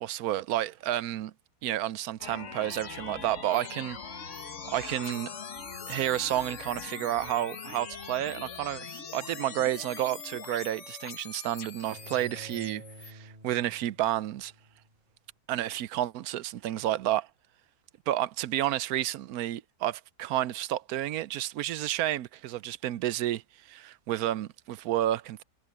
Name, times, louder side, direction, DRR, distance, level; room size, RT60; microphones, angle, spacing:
voice 1, 0.0-1.3 1.6-4.0 4.6-5.3 5.9-14.5 15.5-17.3 18.1-23.4 23.7-25.4, right 13 dB, 85° right, 1.1 m, -30 dB
sound 1, 2.2-13.1, left 6 dB, 55° left, 1.6 m, -42 dB
Bowed string instrument, 11.9-15.0, right 1 dB, 30° right, 4.1 m, -50 dB
omnidirectional pair, 1.5 m